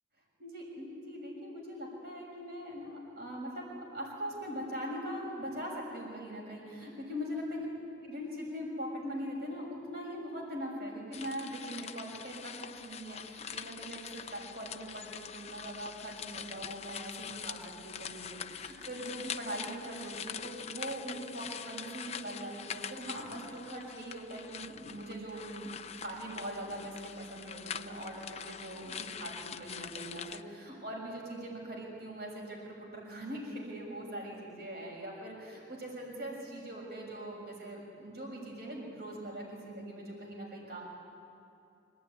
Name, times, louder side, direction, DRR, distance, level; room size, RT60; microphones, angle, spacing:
voice 1, 0.4-7.7 8.0-25.7 26.0-40.8, equal, 60° right, -2 dB, 6.6 m, -41 dB
sound 1, 11.1-30.4, left 7 dB, 35° left, 0.6 m, -44 dB
25.5 x 18.5 x 9.8 m, 2.7 s
head